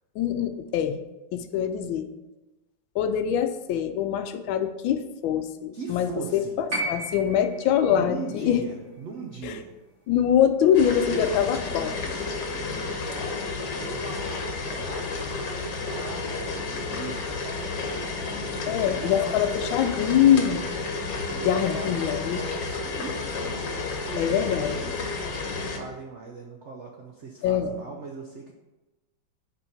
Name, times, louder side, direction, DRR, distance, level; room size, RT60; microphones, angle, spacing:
voice 1, 0.2-1.0 1.3-2.1 2.9-8.6 9.4-9.5 10.1-11.9 18.7-20.6 21.4-22.4 24.2-24.7 27.4-27.8, left 9 dB, 85° left, 10 dB, 1.3 m, -24 dB
voice 2, 5.7-6.5 7.8-9.7 10.6-13.3 13.7-20.4 21.3-23.6 24.0-28.5, right 4 dB, 75° right, 0 dB, 0.6 m, -40 dB
sound 1, 6.7-10.9 12.1-12.2, right 1 dB, 40° right, 1.4 m, -36 dB
sound 2, 10.7-25.8, left 4 dB, 65° left, 1.4 m, -31 dB
5.0 x 4.6 x 5.8 m, 1.1 s
omnidirectional pair, 2.1 m